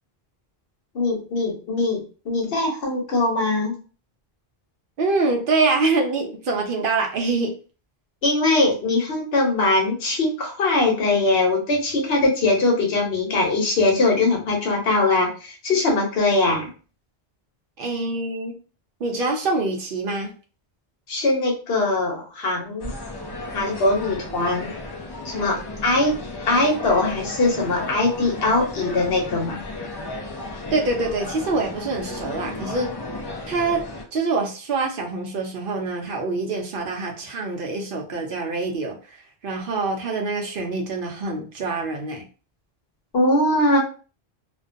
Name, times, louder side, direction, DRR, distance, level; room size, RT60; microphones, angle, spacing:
voice 1, 0.9-3.7 8.2-16.7 21.1-22.9 23.5-24.7 25.2-26.1 26.5-29.6 43.1-43.8, left 2 dB, 75° left, 0 dB, 1.0 m, -21 dB
voice 2, 5.0-7.5 17.8-18.5 19.0-20.3 30.7-32.9 33.5-33.8 34.1-39.2 39.4-42.2, right 3 dB, 65° right, 2 dB, 0.7 m, -25 dB
sound 1, 22.8-34.0, left 2 dB, 45° left, 0.3 m, -34 dB
2.4 x 2.2 x 2.5 m, 0.36 s
omnidirectional pair, 1.0 m